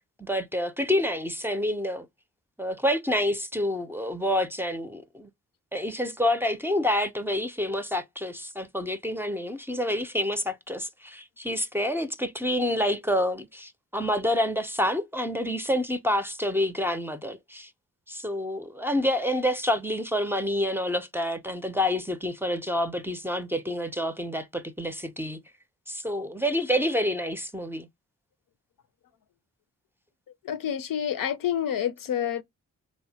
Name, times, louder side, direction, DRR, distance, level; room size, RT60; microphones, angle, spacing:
voice 1, 0.2-2.1 2.6-5.3 5.7-17.7 18.1-25.4 25.9-27.9, left 1 dB, 5° right, 0.5 m, -28 dB
voice 2, 30.4-32.4, left 9 dB, 85° left, 0.5 m, -28 dB
3.1 x 2.1 x 2.7 m
cardioid pair, 55°, 33 cm